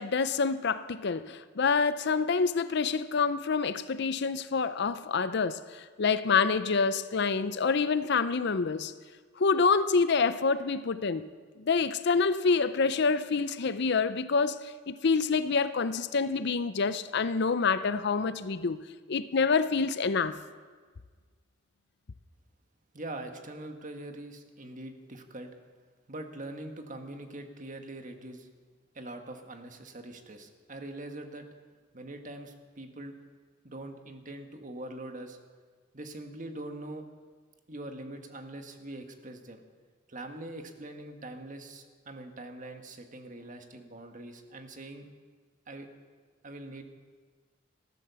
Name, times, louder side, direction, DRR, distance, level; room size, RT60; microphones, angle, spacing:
voice 1, 0.0-8.9 9.4-11.3 11.7-18.8 19.1-20.4, left 5 dB, 60° left, 0.6 m, -27 dB
voice 2, 22.9-25.5 26.1-28.5 28.9-31.4 31.9-33.1 33.6-35.4 35.9-37.0 37.7-39.6 40.1-45.0 45.7-45.9 46.4-46.8, right 1 dB, 40° right, 1.5 m, -43 dB
14.5 x 11.5 x 6.9 m
head